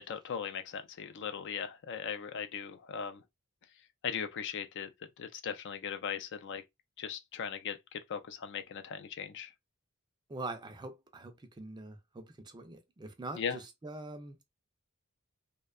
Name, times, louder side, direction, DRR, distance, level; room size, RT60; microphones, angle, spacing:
voice 1, 0.0-3.2 4.0-4.9 5.2-6.6 7.0-9.5 13.4-13.6, left 7 dB, 55° left, 0.4 m, -38 dB
voice 2, 10.3-14.4, right 2 dB, 20° right, 0.4 m, -44 dB
2.6 x 2.1 x 2.3 m
head